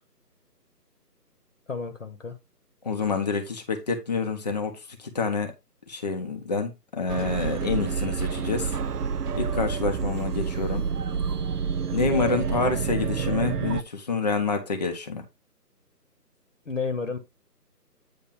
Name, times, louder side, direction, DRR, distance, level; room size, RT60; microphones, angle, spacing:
voice 1, 1.7-2.4 16.6-17.2, left 4 dB, 50° left, 1.5 m, -31 dB
voice 2, 2.8-4.7 5.1-5.5 5.9-8.7 9.4-10.9 11.9-15.2, left 4 dB, 25° left, 1.1 m, -27 dB
sound 1, 7.1-13.8, right 6 dB, 70° right, 0.7 m, -28 dB
9.1 x 3.1 x 5.7 m
figure-of-eight pair, 160°, 48 cm